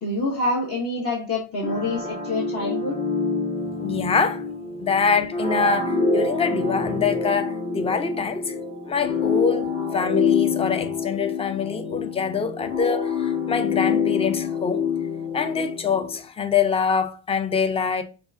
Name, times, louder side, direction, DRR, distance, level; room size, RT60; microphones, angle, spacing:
voice 1, 0.0-3.0, left 2 dB, 40° left, 1.0 m, -26 dB
sound 1, 1.6-16.2, left 5 dB, 60° left, 1.8 m, -26 dB
voice 2, 3.8-4.4 4.8-8.6 8.9-14.8 15.3-18.0, left 5 dB, 15° left, 0.4 m, -25 dB
4.7 x 2.4 x 2.4 m
cardioid pair, 90°, 36 cm